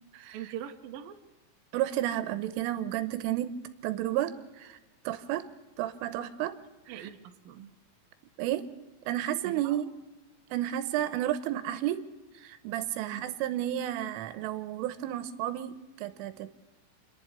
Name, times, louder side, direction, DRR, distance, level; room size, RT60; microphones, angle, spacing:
voice 1, 0.3-1.2 6.9-7.7 9.4-9.8 12.9-13.2, right 10 dB, 65° right, 5 dB, 2.4 m, -42 dB
voice 2, 1.7-3.6 3.8-4.8 5.1-6.6 6.9-7.1 8.4-8.7 9.1-9.9 10.5-12.0 12.4-16.5, right 12 dB, 80° right, 13 dB, 3.5 m, -32 dB
28.5 x 11.5 x 8.1 m, 1.1 s
omnidirectional pair, 5.8 m